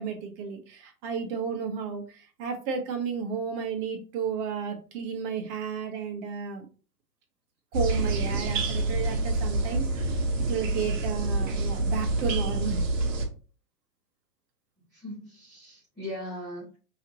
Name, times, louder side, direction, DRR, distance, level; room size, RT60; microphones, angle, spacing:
voice 1, 0.0-6.6 7.7-10.2 10.5-12.8, right 6 dB, 35° right, 4 dB, 1.3 m, -33 dB
sound 1, 7.7-13.3, right 2 dB, 50° right, 1.3 m, -27 dB
voice 2, 14.9-16.8, left 1 dB, ahead, -14 dB, 0.3 m, -40 dB
5.5 x 3.0 x 3.0 m, 0.36 s
figure-of-eight pair, 110°, 48 cm